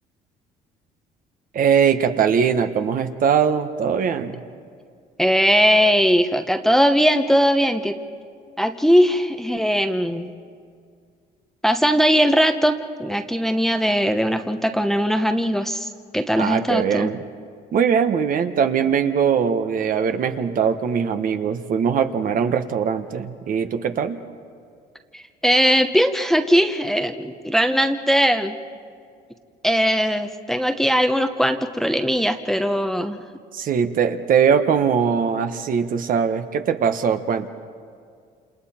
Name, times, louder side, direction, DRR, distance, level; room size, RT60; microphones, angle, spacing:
voice 1, 1.5-4.4 16.4-17.2 17.7-24.2 33.5-37.5, right 7 dB, 55° right, 8 dB, 1.2 m, -21 dB
voice 2, 5.2-8.0 8.6-10.3 11.6-17.1 25.1-28.6 29.6-33.2, equal, ahead, 6 dB, 0.9 m, -19 dB
28.0 x 28.0 x 4.4 m, 2.2 s
cardioid pair, 110°, 17 cm